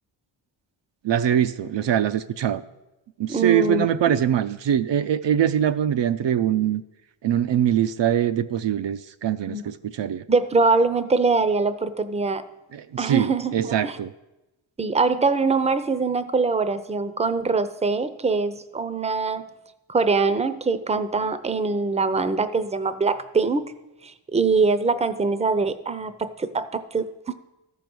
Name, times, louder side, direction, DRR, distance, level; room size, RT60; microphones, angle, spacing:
voice 1, 1.0-2.6 3.2-6.8 7.2-10.2 12.7-14.1, right 10 dB, 60° right, 11 dB, 0.6 m, -23 dB
voice 2, 3.3-3.9 9.5-9.6 10.3-12.4 13.0-14.0 14.8-19.4 19.9-23.7 24.0-27.3, right 4 dB, 15° right, 13 dB, 0.6 m, -23 dB
13.5 x 5.3 x 6.2 m, 0.98 s
cardioid pair, 70°, 49 cm